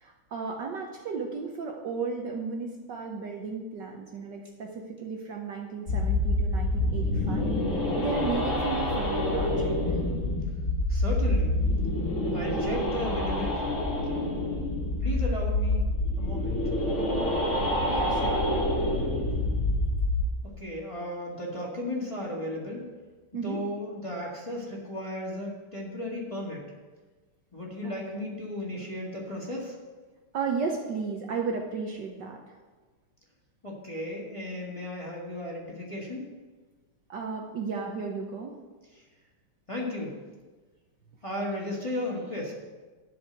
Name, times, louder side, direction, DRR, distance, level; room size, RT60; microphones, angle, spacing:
voice 1, 0.0-4.7 5.0-7.5 8.0-9.7 17.9-18.5 23.3-23.6 27.8-28.3 30.3-32.4 37.1-38.6, right 5 dB, 60° right, 1 dB, 1.4 m, -34 dB
sound 1, 5.9-20.2, left 1 dB, 35° left, 2.1 m, -27 dB
voice 2, 10.9-11.5 12.3-13.7 15.0-15.8 16.2-16.6 20.6-22.8 23.3-26.6 27.5-29.7 33.6-36.2 39.7-40.1 41.2-42.5, left 1 dB, 15° left, -4 dB, 1.8 m, -35 dB
12.0 x 5.0 x 7.8 m, 1.3 s
omnidirectional pair, 2.4 m